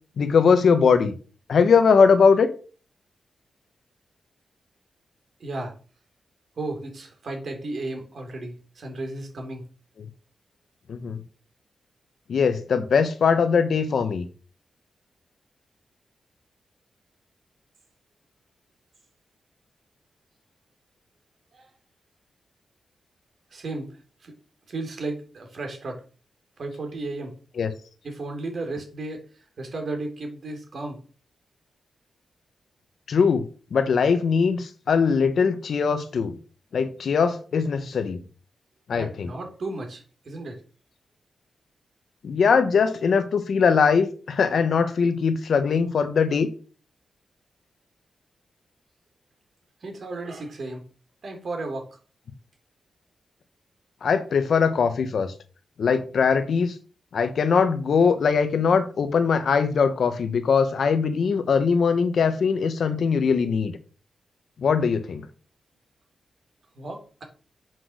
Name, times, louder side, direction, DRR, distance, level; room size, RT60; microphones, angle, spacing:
voice 1, 0.2-1.1 1.5-2.5 10.9-11.2 12.3-14.3 27.6-27.7 33.1-33.4 33.7-36.4 36.7-38.2 38.9-39.3 42.2-46.5 54.0-55.3 55.8-56.7 57.1-63.8 64.6-65.2, left 5 dB, 60° left, 1.1 m, -21 dB
voice 2, 5.4-5.7 6.6-9.6 21.5-21.7 23.5-24.3 24.7-26.0 26.6-27.3 28.0-31.0 38.9-40.6 49.8-50.8 51.2-51.9 66.8-67.2, right 2 dB, 50° right, 3.0 m, -34 dB
8.1 x 6.1 x 6.4 m
wide cardioid pair, 160°, 0 cm